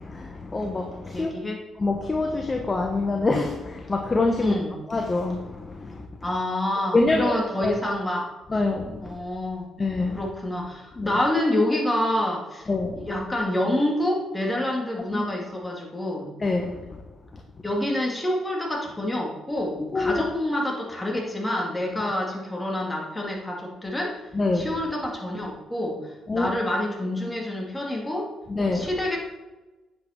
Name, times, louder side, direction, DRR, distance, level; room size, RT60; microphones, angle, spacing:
voice 1, 0.0-1.3 1.8-4.5 4.9-6.1 6.9-7.4 7.6-7.7 8.5-9.2 9.8-10.2 11.0-11.1 12.7-13.1 15.1-15.2 16.4-16.8 19.9-20.2 24.3-24.7 26.3-26.5 28.5-28.9, left 3 dB, 25° left, 4 dB, 1.1 m, -25 dB
voice 2, 1.1-1.6 4.4-4.8 6.2-8.3 9.0-9.7 10.1-12.7 13.0-16.3 17.6-24.1 24.5-28.3 28.7-29.2, left 1 dB, 10° left, -1 dB, 2.8 m, -27 dB
9.6 x 7.8 x 4.5 m, 1.1 s
cardioid pair, 90°, 0 cm